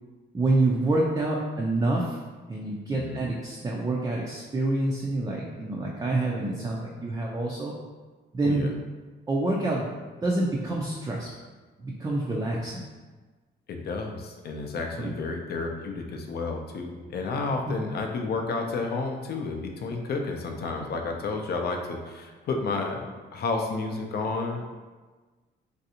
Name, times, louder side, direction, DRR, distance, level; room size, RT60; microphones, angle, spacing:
voice 1, 0.3-2.2 2.5-7.7 8.3-8.7 9.3-9.9 10.2-11.3 11.8-12.8 15.0-15.1 17.6-17.8, right 2 dB, 15° right, -3 dB, 0.4 m, -27 dB
voice 2, 2.9-3.2 8.4-8.7 13.7-24.6, left 3 dB, 55° left, 3 dB, 0.5 m, -31 dB
3.2 x 2.6 x 2.8 m, 1.3 s
cardioid pair, 90°, 20 cm